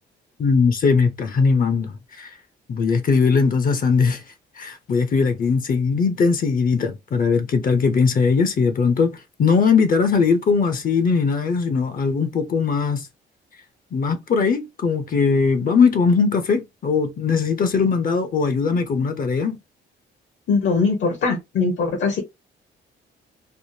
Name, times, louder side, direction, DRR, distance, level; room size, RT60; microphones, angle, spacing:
voice 1, 0.4-2.3 2.7-4.2 4.6-13.1 13.9-19.6, left 5 dB, 45° left, 0.6 m, -20 dB
voice 2, 20.5-22.2, left 4 dB, 70° left, 1.0 m, -21 dB
3.4 x 2.0 x 2.6 m
cardioid pair, 90°, 20 cm